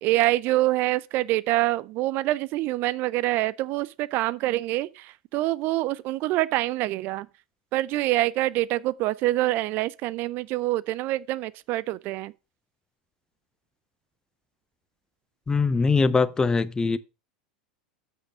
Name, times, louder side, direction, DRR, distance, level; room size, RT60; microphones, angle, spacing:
voice 1, 0.0-7.3 7.7-12.3, right 17 dB, 50° right, 0.4 m, -26 dB
voice 2, 15.5-17.0, left 4 dB, 15° left, 0.5 m, -22 dB
7.9 x 6.3 x 4.9 m
hypercardioid pair, 90°, 5 cm